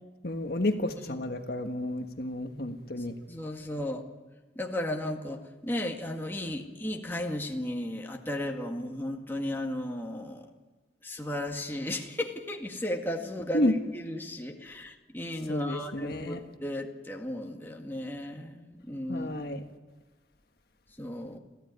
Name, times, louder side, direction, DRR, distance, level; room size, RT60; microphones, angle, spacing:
voice 1, 0.2-3.1 13.5-13.7 15.5-16.4 19.1-19.6, left 1 dB, 55° left, 6 dB, 1.5 m, -31 dB
voice 2, 3.0-4.0 4.6-10.5 11.0-19.5 21.0-21.4, left 1 dB, 10° left, 1 dB, 1.9 m, -35 dB
28.0 x 15.5 x 9.6 m, 1.3 s
head